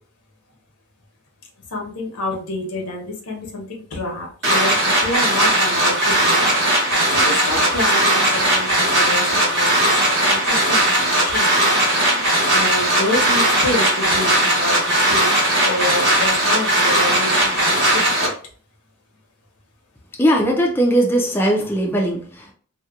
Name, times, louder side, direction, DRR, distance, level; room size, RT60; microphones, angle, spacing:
voice 1, 1.7-12.2 12.5-18.3, left 2 dB, 80° left, 0 dB, 0.9 m, -28 dB
sound 1, 4.4-18.3, right 1 dB, 55° right, 1.1 m, -18 dB
voice 2, 20.2-22.5, right 1 dB, 10° left, -2 dB, 0.4 m, -19 dB
2.8 x 2.1 x 2.3 m, 0.43 s
head